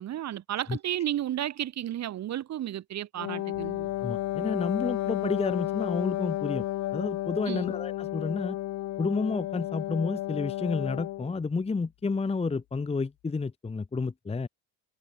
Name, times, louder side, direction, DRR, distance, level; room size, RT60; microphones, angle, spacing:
voice 1, 0.0-3.9 7.5-7.7, right 12 dB, 40° right, 0.7 m, -33 dB
Wind instrument woodwind instrument, 3.2-11.3, left 15 dB, 45° left, 0.5 m, -32 dB
sound 1, 3.5-13.3, left 20 dB, 80° left, 5.8 m, -59 dB
voice 2, 4.0-6.6 6.9-8.6 9.0-14.5, left 4 dB, 15° left, 0.8 m, -30 dB
supercardioid pair, 90°, 42 cm